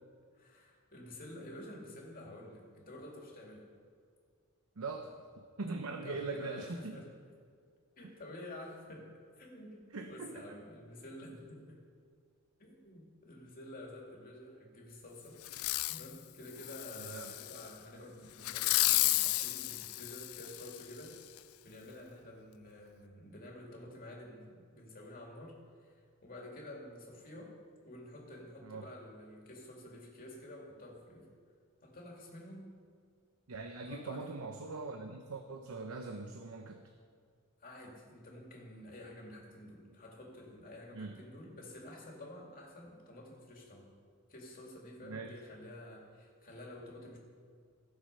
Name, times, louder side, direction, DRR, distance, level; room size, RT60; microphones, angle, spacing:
voice 1, 0.3-3.7 6.0-7.1 8.0-11.8 12.6-15.4 15.9-27.6 27.8-31.3 31.8-32.7 33.8-34.4 37.6-43.9 44.3-47.2, left 1 dB, 45° left, -1 dB, 2.6 m, -50 dB
voice 2, 4.8-5.1 5.6-7.0 9.9-10.6 16.9-17.3 28.6-28.8 33.5-36.8 40.9-41.2 45.0-45.3, right 3 dB, 90° right, 5 dB, 0.8 m, -41 dB
Fireworks, 15.4-16.1 16.6-17.6 18.4-20.8 21.4-21.5, left 18 dB, 80° left, 0.4 m, -32 dB
16.5 x 7.0 x 5.5 m, 2.1 s
head